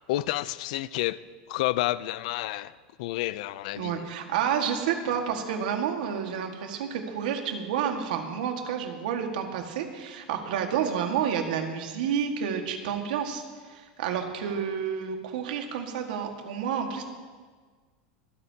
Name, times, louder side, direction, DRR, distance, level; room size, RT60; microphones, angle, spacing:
voice 1, 0.1-1.2 1.5-2.7 3.0-4.1, left 16 dB, 60° left, 0.4 m, -30 dB
voice 2, 3.8-13.4 13.7-17.0, right 8 dB, 80° right, 1.7 m, -30 dB
25.0 x 9.6 x 2.9 m
supercardioid pair, 165°, 4 cm